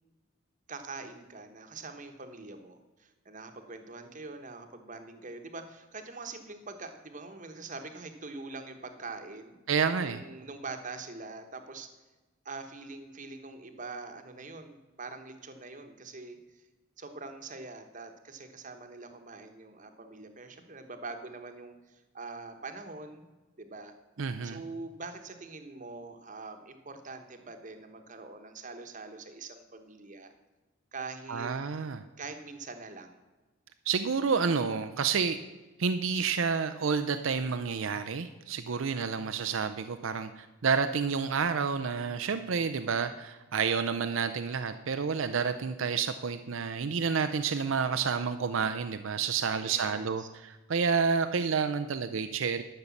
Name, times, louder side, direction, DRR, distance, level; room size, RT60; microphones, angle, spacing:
voice 1, 0.7-9.6 10.0-11.9 12.4-16.4 17.0-23.3 23.6-23.9 24.4-30.3 30.9-31.5 32.2-33.2 49.6-50.3, right 3 dB, 35° right, 6 dB, 1.1 m, -44 dB
voice 2, 9.7-10.2 24.2-24.6 31.3-32.0 33.9-35.4 35.8-52.6, right 5 dB, 70° right, 10 dB, 0.5 m, -29 dB
12.5 x 6.6 x 7.1 m, 1.2 s
head